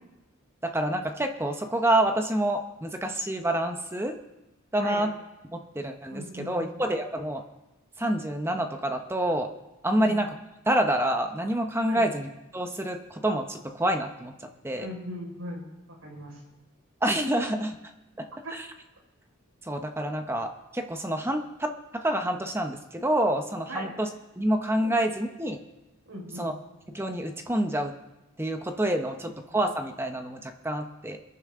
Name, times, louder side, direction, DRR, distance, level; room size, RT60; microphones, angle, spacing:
voice 1, 0.6-4.2 4.7-5.1 5.5-7.4 8.0-9.5 9.8-10.4 10.7-12.3 12.5-14.3 14.6-14.9 17.0-17.8 18.2-18.3 18.5-18.7 19.6-24.1 24.4-25.6 26.4-26.5 26.9-27.9 28.4-31.2, right 1 dB, 10° right, 5 dB, 0.9 m, -27 dB
voice 2, 4.8-5.1 6.1-6.8 9.9-10.2 11.8-12.0 14.7-15.6 15.9-16.4 18.4-18.5 23.7-23.9 24.8-24.9 26.1-26.5 29.2-29.3, equal, 80° right, -1 dB, 5.1 m, -38 dB
27.5 x 9.6 x 3.8 m, 1.0 s
head